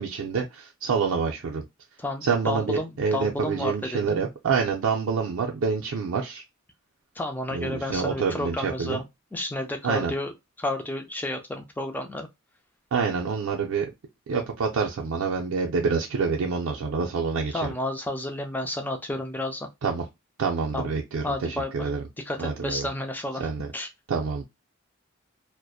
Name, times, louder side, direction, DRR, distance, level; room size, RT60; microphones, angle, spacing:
voice 1, 0.0-1.6 2.2-6.4 7.5-9.0 9.8-10.1 12.9-13.9 14.3-17.7 19.8-20.0 20.4-22.0 22.4-22.9 23.4-23.7 24.1-24.4, right 5 dB, 85° right, 0.4 m, -27 dB
voice 2, 2.0-4.3 7.2-9.0 9.3-10.3 10.6-12.3 17.5-19.7 20.7-20.9 21.2-21.9 22.2-23.5 23.7-23.9, left 1 dB, 10° left, 0.3 m, -31 dB
2.6 x 2.1 x 2.3 m
head